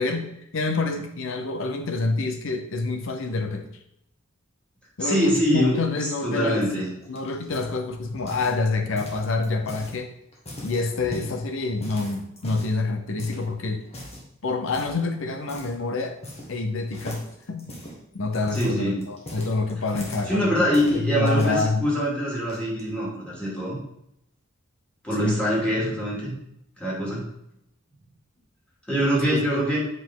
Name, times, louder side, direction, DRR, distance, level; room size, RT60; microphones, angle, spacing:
voice 1, 0.0-3.7 5.0-6.6 7.1-10.1 10.6-13.8 14.4-16.1 16.5-17.7 18.1-20.7 20.9-21.8 25.2-25.4 29.3-29.6, left 3 dB, 70° left, 6 dB, 0.7 m, -27 dB
voice 2, 5.0-5.8 6.2-6.9 18.5-19.1 20.3-23.8 25.0-26.3 26.8-27.3 28.9-29.8, equal, 5° left, -7 dB, 2.6 m, -24 dB
sound 1, 6.7-8.6 8.9-9.9 10.3-11.4 11.8-12.8 13.2-13.4 13.9-14.3 14.7-15.0 15.5-15.7 16.0-16.6 16.9-20.3 20.7-21.6 22.3-22.8, left 1 dB, 30° left, 1.7 m, -39 dB
7.5 x 5.1 x 3.8 m, 0.76 s
head